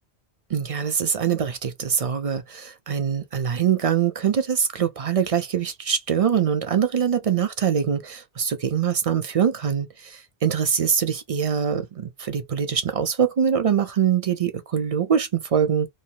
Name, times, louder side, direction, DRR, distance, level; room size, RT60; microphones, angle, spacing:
voice 1, 0.5-15.9, right 8 dB, 50° right, 0.4 m, -23 dB
2.7 x 2.6 x 2.8 m
omnidirectional pair, 1.1 m